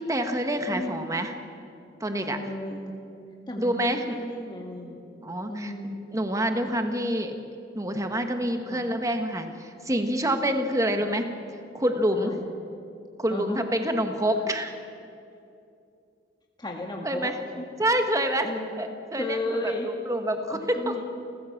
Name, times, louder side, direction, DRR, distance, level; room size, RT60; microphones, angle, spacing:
voice 1, 0.0-1.3 2.0-2.4 3.6-4.1 5.2-5.7 6.1-7.3 7.7-11.2 11.7-12.3 13.2-14.7 17.0-17.3 17.8-18.5 18.8-21.0, right 1 dB, 20° right, 6 dB, 1.5 m, -27 dB
voice 2, 0.7-1.2 2.3-2.9 3.5-5.0 5.5-6.1 8.7-8.9 10.9-11.0 12.1-12.5 13.3-13.6 16.6-17.3 17.6-17.7 18.4-18.8 19.1-19.9 20.5-21.0, left 1 dB, 25° left, 0 dB, 1.8 m, -34 dB
29.5 x 15.5 x 7.3 m, 2.6 s
head